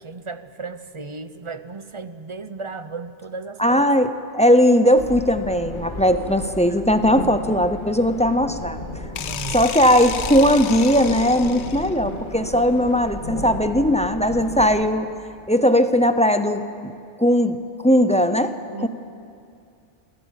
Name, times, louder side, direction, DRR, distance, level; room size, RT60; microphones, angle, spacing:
voice 1, 0.0-3.6 6.7-6.8 9.2-9.6 18.7-18.9, right 4 dB, 30° right, 11 dB, 0.7 m, -35 dB
voice 2, 3.6-8.8 9.5-15.1 15.5-16.9 17.2-17.6 17.8-18.9, equal, 5° left, 9 dB, 0.6 m, -18 dB
sound 1, 4.9-14.7, left 1 dB, 45° left, 2.3 m, -34 dB
sound 2, 9.2-12.1, left 9 dB, 75° left, 1.0 m, -32 dB
26.0 x 16.0 x 7.4 m, 2.5 s
omnidirectional pair, 1.1 m